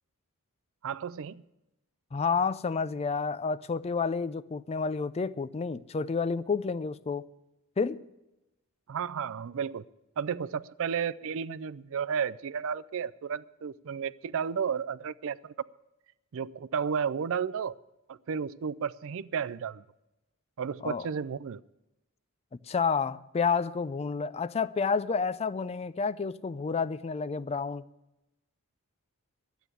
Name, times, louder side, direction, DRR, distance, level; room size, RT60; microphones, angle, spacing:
voice 1, 0.8-1.4 8.9-9.8 10.2-15.5 16.3-17.8 18.1-19.8 20.6-21.6, right 7 dB, 60° right, 0.4 m, -33 dB
voice 2, 2.1-7.3 7.8-8.0 20.8-21.1 22.7-27.8, left 5 dB, 30° left, 0.4 m, -30 dB
12.0 x 9.1 x 8.2 m
head